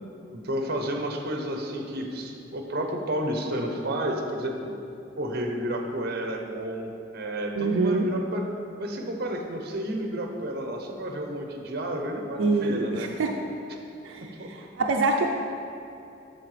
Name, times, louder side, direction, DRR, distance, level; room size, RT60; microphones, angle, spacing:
voice 1, 0.3-4.8 5.2-8.4 8.8-13.1 14.4-14.5, right 1 dB, 55° right, 3 dB, 0.8 m, -31 dB
voice 2, 7.6-8.1 12.4-13.4 14.0-15.3, right 3 dB, 85° right, 2 dB, 0.5 m, -25 dB
8.4 x 6.5 x 3.3 m, 2.8 s
head